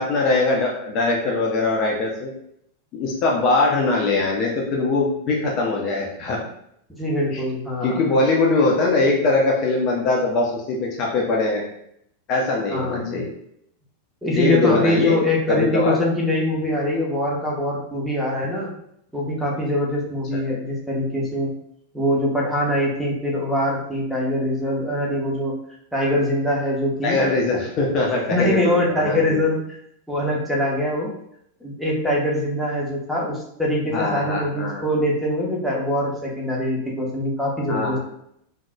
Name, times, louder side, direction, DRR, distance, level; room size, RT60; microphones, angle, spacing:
voice 1, 0.0-2.3 2.9-6.4 7.3-7.4 7.8-11.6 12.3-13.3 14.3-15.2 15.5-16.0 20.3-20.4 27.0-29.4 33.9-34.8 37.7-38.0, left 3 dB, 35° left, -2 dB, 0.6 m, -22 dB
voice 2, 7.0-8.2 12.7-13.2 14.2-18.7 19.1-21.5 21.9-25.6 25.9-27.2 28.3-29.6 30.1-31.1 31.6-38.0, left 1 dB, ahead, -4 dB, 0.9 m, -23 dB
3.7 x 2.7 x 2.3 m, 0.72 s
figure-of-eight pair, 90°, 0 cm